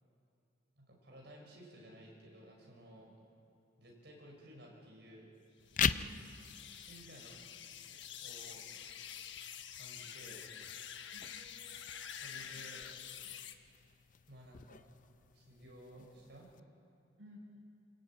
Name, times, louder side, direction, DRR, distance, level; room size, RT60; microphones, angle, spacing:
voice 1, 0.8-3.1 3.8-5.3 6.6-7.4 7.9-8.8 9.7-10.5 12.2-12.9 14.3-14.8 15.3-16.5, equal, 55° right, -1 dB, 6.1 m, -55 dB
sound 1, 5.6-16.6, left 7 dB, 40° left, 0.5 m, -43 dB
sound 2, 5.7-13.5, left 9 dB, 65° left, 1.1 m, -48 dB
voice 2, 5.8-6.2 11.1-12.0 12.3-12.7 17.2-17.4, equal, 75° right, -2 dB, 7.2 m, -57 dB
27.5 x 17.0 x 9.1 m, 2.5 s
head